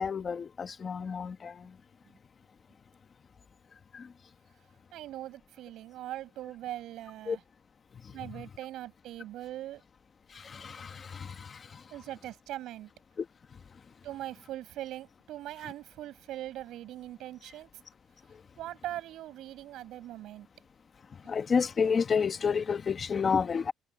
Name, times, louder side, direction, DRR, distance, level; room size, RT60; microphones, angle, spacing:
voice 1, 0.0-1.8 3.9-4.1 7.3-7.4 7.9-8.4 10.3-11.9 13.2-13.3 13.5-13.6 18.3-18.4 21.1-23.7, left 6 dB, 30° left, 1.3 m, -31 dB
voice 2, 4.9-7.4 8.1-9.8 11.9-12.9 14.0-17.7 18.6-20.5, right 14 dB, 70° right, 7.1 m, -41 dB
cardioid pair, 130°, 0 cm